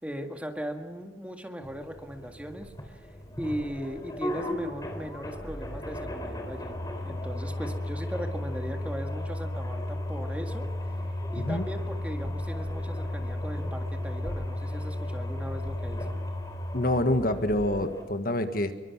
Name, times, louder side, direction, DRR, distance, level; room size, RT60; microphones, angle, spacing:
voice 1, 0.0-3.1 3.4-6.8 7.0-10.7 11.3-16.1, equal, 5° right, 4 dB, 1.9 m, -38 dB
sound 1, 1.6-18.0, left 1 dB, 20° left, 3.7 m, -34 dB
voice 2, 16.7-18.7, left 1 dB, 50° left, 8 dB, 1.6 m, -26 dB
26.0 x 23.5 x 6.0 m, 1.2 s
head